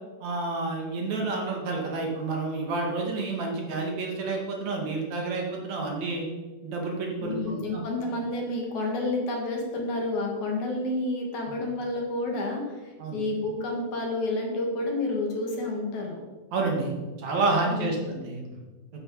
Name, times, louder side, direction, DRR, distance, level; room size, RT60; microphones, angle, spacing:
voice 1, 0.2-6.3 6.6-7.8 11.5-11.6 13.0-13.2 16.5-16.9 17.2-18.6, right 3 dB, 60° right, 0 dB, 3.3 m, -29 dB
voice 2, 7.2-12.6 13.1-16.2 17.7-18.1, left 2 dB, 65° left, 1 dB, 3.4 m, -30 dB
12.5 x 10.5 x 4.9 m, 1.3 s
omnidirectional pair, 3.7 m